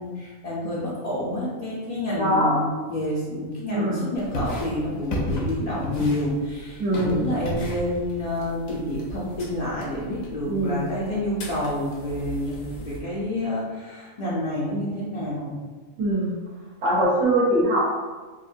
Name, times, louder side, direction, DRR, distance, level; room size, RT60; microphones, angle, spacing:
voice 1, 0.0-15.6, left 1 dB, 55° left, -8 dB, 0.4 m, -28 dB
voice 2, 2.1-2.6 3.7-4.1 6.8-7.3 10.5-10.9 16.0-16.4 16.8-18.0, right 1 dB, 80° right, -7 dB, 1.4 m, -22 dB
sound 1, 4.1-13.0, equal, 80° left, 1.1 m, -34 dB
3.8 x 2.4 x 2.7 m, 1.4 s
omnidirectional pair, 1.4 m